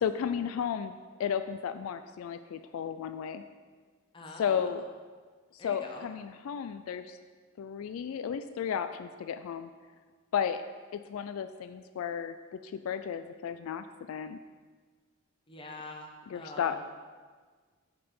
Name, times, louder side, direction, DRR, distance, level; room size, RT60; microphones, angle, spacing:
voice 1, 0.0-3.4 4.4-4.8 5.5-7.2 7.6-9.7 10.3-10.6 10.9-14.4 16.3-16.8, left 7 dB, 80° left, 10 dB, 0.3 m, -33 dB
voice 2, 4.1-4.8 5.6-6.1 15.5-16.9, left 2 dB, 25° left, 1 dB, 0.9 m, -45 dB
6.9 x 5.3 x 5.4 m, 1.5 s
head